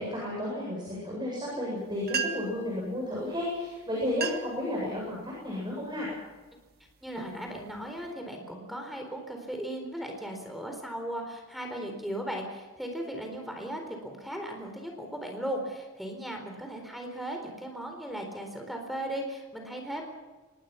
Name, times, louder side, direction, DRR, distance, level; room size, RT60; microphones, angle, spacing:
voice 1, 0.0-6.1, left 1 dB, 20° right, -4 dB, 7.9 m, -32 dB
sound 1, 1.8-1.9 2.0-2.7 3.5-3.7 4.0-4.6 5.1-5.5 6.1-6.4 6.9-8.1, right 6 dB, 45° right, 1.8 m, -35 dB
voice 2, 7.0-20.0, right 1 dB, ahead, 3 dB, 4.1 m, -37 dB
25.5 x 21.5 x 5.9 m, 1.2 s
head